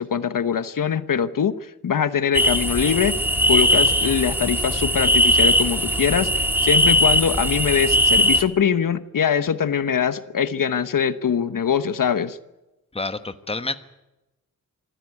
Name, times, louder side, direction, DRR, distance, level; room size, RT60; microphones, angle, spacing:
voice 1, 0.0-3.2 3.5-12.4, left 7 dB, 65° left, 13 dB, 1.1 m, -22 dB
sound 1, 2.3-8.4, equal, 5° right, 2.0 m, -19 dB
voice 2, 12.9-13.7, left 3 dB, 15° left, 11 dB, 1.2 m, -28 dB
26.0 x 15.0 x 9.5 m, 0.99 s
wide cardioid pair, 110°, 34 cm